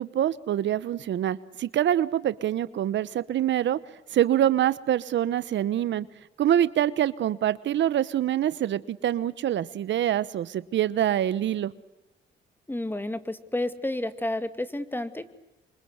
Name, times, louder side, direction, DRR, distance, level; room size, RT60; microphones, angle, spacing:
voice 1, 0.0-3.8 4.1-6.1 6.4-11.7, right 11 dB, 65° right, 16 dB, 1.1 m, -25 dB
voice 2, 12.7-15.2, left 1 dB, 10° left, 11 dB, 2.2 m, -30 dB
27.5 x 24.5 x 8.0 m, 0.97 s
cardioid pair, 90°, 20 cm